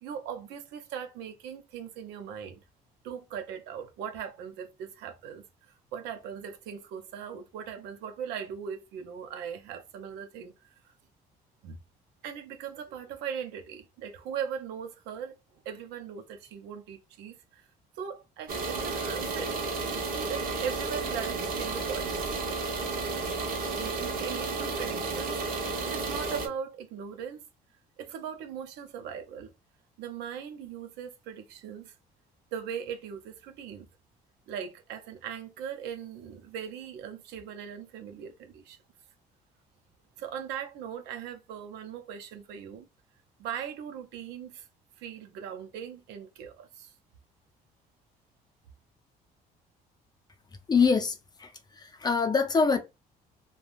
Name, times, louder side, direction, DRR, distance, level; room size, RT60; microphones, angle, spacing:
voice 1, 0.0-2.6 3.0-5.4 5.9-10.7 11.6-11.8 12.2-15.4 15.6-17.7 17.9-22.4 23.8-25.4 25.8-27.5 28.0-29.5 30.0-31.9 32.5-33.9 34.5-38.8 40.2-42.9 43.4-44.7 45.0-46.9, right 8 dB, 90° right, 0.7 m, -39 dB
sound 1, 18.5-26.5, right 3 dB, 60° right, 1.0 m, -32 dB
voice 2, 50.7-51.5 51.8-52.8, left 5 dB, 25° left, 0.5 m, -24 dB
3.3 x 2.2 x 2.5 m
cardioid pair, 110°, 17 cm